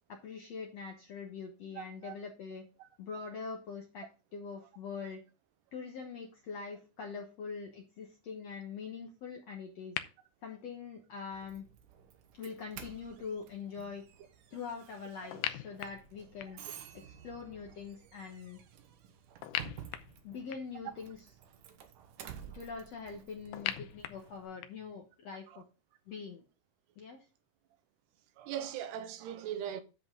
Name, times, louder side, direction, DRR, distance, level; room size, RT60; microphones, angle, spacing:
voice 1, 0.1-2.6 3.0-5.2 5.7-10.0 10.4-11.6 12.3-14.0 14.5-16.6 16.9-18.6 20.2-21.2 22.4-25.6 26.1-26.4 27.0-27.2, left 5 dB, 65° left, 1.7 m, -43 dB
voice 2, 1.8-2.1 2.8-2.9 21.7-21.8 25.5-25.6 28.4-29.8, right 10 dB, 85° right, 3.0 m, -40 dB
sound 1, 10.0-10.1 15.3-16.7 19.4-20.8 23.5-24.9, left 12 dB, 85° left, 2.7 m, -39 dB
Doorbell, 11.3-24.5, right 9 dB, 65° right, 2.2 m, -52 dB
9.6 x 7.8 x 3.7 m
omnidirectional pair, 4.6 m